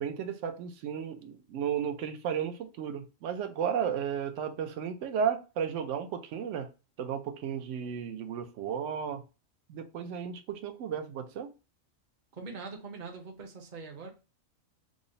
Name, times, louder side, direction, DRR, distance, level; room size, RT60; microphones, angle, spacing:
voice 1, 0.0-6.7 7.0-9.2 9.7-11.5, right 8 dB, 75° right, 0.9 m, -34 dB
voice 2, 12.3-14.1, right 4 dB, 45° right, 0.8 m, -42 dB
3.8 x 2.0 x 3.8 m
omnidirectional pair, 1.3 m